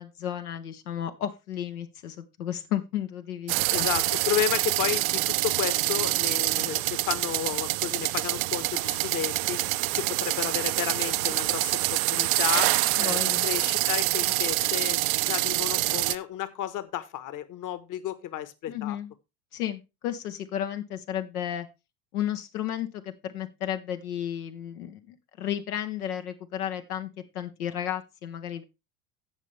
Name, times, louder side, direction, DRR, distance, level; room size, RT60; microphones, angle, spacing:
voice 1, 0.0-3.8 12.9-13.5 18.7-19.1 19.5-21.7 22.1-27.1 27.3-28.6, left 10 dB, 90° left, 7 dB, 1.0 m, -33 dB
sound 1, 3.5-16.2, right 19 dB, 70° right, 0.6 m, -26 dB
voice 2, 3.7-9.6 9.9-19.0, left 11 dB, 45° left, 14 dB, 1.2 m, -32 dB
16.0 x 5.5 x 3.3 m, 0.26 s
hypercardioid pair, 80°, 43 cm